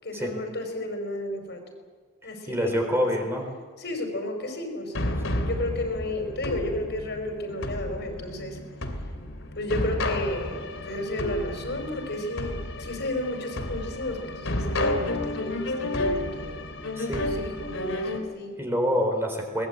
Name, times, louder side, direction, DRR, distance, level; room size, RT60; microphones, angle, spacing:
voice 1, 0.0-1.6 2.2-3.1 3.8-8.6 9.5-16.7 17.2-18.5, left 1 dB, 55° left, 4 dB, 5.1 m, -33 dB
voice 2, 2.5-3.5 5.3-5.4 17.0-17.3 18.6-19.7, equal, 10° right, 3 dB, 4.0 m, -26 dB
sound 1, 4.9-18.2, left 1 dB, 85° left, 3.0 m, -31 dB
22.5 x 20.5 x 8.9 m, 1.5 s
head